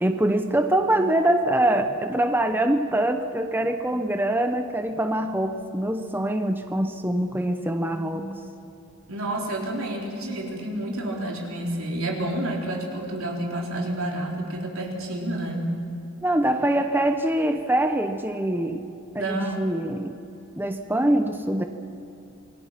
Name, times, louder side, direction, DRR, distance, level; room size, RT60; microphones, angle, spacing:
voice 1, 0.0-8.4 16.2-18.8 19.1-20.2 20.6-21.6, right 1 dB, 10° right, 6 dB, 0.8 m, -24 dB
voice 2, 9.1-15.7 19.1-19.7, right 1 dB, 75° right, -1 dB, 4.2 m, -29 dB
28.0 x 21.5 x 5.9 m, 2.8 s
head